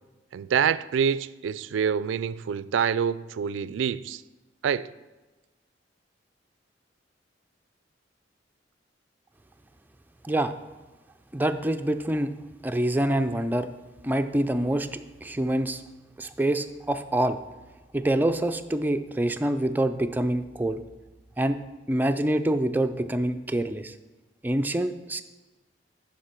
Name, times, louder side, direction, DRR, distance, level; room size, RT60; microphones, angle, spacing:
voice 1, 0.3-4.2 4.6-4.9, right 7 dB, 85° right, 0.3 m, -26 dB
voice 2, 11.3-12.3 12.6-13.7 14.0-15.8 16.2-17.4 17.9-20.8 21.4-21.6 21.9-23.9 24.4-25.2, right 1 dB, 10° right, 0.4 m, -26 dB
9.5 x 5.9 x 4.4 m
head